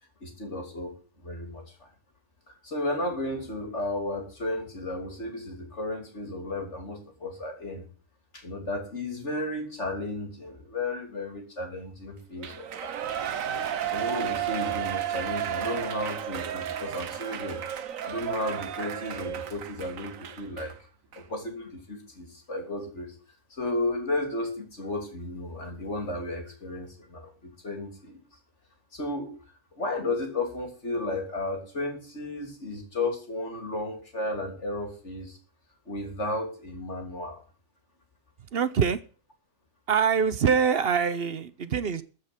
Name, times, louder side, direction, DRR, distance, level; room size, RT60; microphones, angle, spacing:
voice 1, 0.2-1.9 2.6-7.9 8.3-12.9 13.9-17.6 18.0-20.7 21.1-23.2 23.5-28.2 28.9-29.3 29.7-35.4 35.8-37.4, left 2 dB, 60° left, 3 dB, 3.3 m, -33 dB
Shout / Cheering, 12.4-20.7 21.1-21.2, right 10 dB, 90° right, 1.3 m, -33 dB
voice 2, 38.5-39.0 39.9-42.0, right 6 dB, 55° right, 14 dB, 0.9 m, -24 dB
14.0 x 5.7 x 8.1 m, 0.38 s
omnidirectional pair, 1.3 m